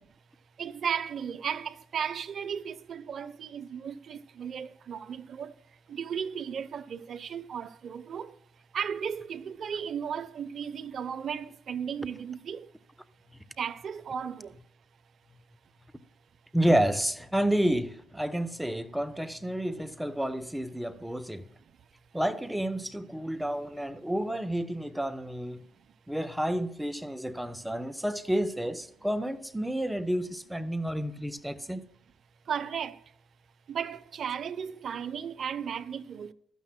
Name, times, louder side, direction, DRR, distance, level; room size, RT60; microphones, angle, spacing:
voice 1, 0.6-5.5 5.9-8.3 8.7-12.7 13.6-14.5 32.5-33.0 33.7-36.3, right 7 dB, 55° right, 0.7 m, -35 dB
voice 2, 16.5-21.4 22.1-25.6 26.1-31.8, right 1 dB, 5° right, 0.9 m, -30 dB
15.5 x 12.5 x 2.2 m
cardioid pair, 90°, 0 cm